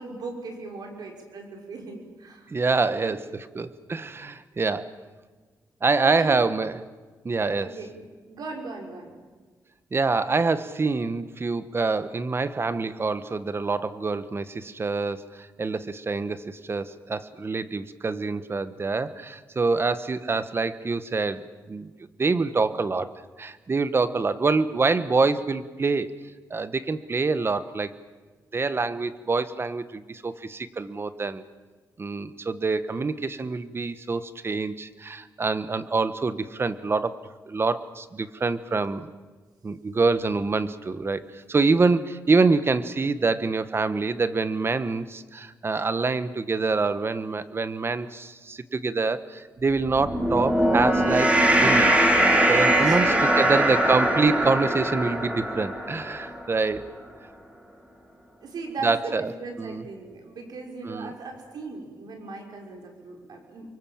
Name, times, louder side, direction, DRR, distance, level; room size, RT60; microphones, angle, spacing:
voice 1, 0.0-2.5 2.9-3.5 6.1-6.4 7.4-9.2 52.8-53.6 56.1-56.3 58.4-63.7, right 3 dB, 75° right, 2 dB, 5.9 m, -38 dB
voice 2, 2.5-5.0 5.8-6.8 7.2-7.8 9.9-21.9 22.2-23.1 23.4-26.1 26.5-27.9 28.5-31.4 32.0-39.1 39.6-51.3 51.6-52.1 52.5-56.8 58.8-59.3 59.6-59.8 60.8-61.1, right 4 dB, 35° right, 13 dB, 1.4 m, -26 dB
sound 1, 49.9-56.4, right 1 dB, 20° right, 4.9 m, -21 dB
29.5 x 23.5 x 7.4 m, 1.4 s
cardioid pair, 85°, 7 cm